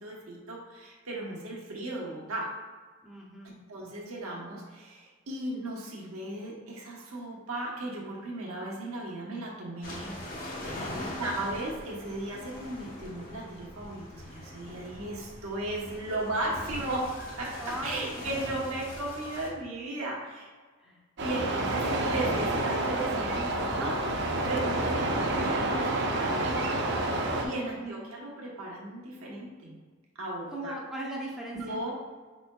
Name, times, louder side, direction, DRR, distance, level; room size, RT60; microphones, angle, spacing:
voice 1, 0.0-2.5 3.7-10.1 10.5-10.8 11.2-20.5 21.2-29.8 30.2-30.7 31.5-31.9, right 2 dB, 80° right, -4 dB, 1.0 m, -36 dB
voice 2, 3.0-3.6 10.8-11.3 17.5-18.6 20.8-21.0 27.6-28.1 30.5-31.8, right 1 dB, ahead, -5 dB, 0.6 m, -40 dB
sound 1, 9.8-19.5, left 1 dB, 45° left, 0.9 m, -41 dB
sound 2, 21.2-27.5, right 2 dB, 55° right, 0.6 m, -28 dB
5.4 x 4.2 x 2.2 m, 1.4 s
head